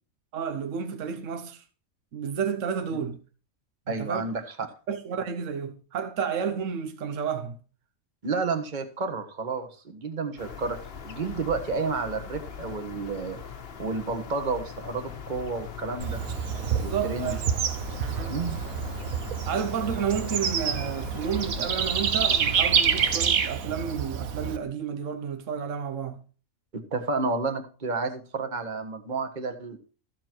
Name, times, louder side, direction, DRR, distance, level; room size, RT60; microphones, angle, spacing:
voice 1, 0.3-1.6 2.1-3.2 4.0-4.2 4.9-7.6 16.7-17.4 18.1-18.4 19.4-26.2, right 7 dB, 65° right, 1.3 m, -31 dB
voice 2, 3.9-4.5 8.2-10.8 11.0-13.4 13.8-16.2 16.8-17.4 18.3-18.6 26.7-29.8, right 4 dB, 35° right, 1.5 m, -31 dB
sound 1, 10.4-23.2, left 7 dB, 50° left, 1.1 m, -41 dB
Bird / Insect, 16.0-24.6, right 7 dB, 85° right, 1.5 m, -27 dB
14.0 x 7.3 x 4.5 m
omnidirectional pair, 1.4 m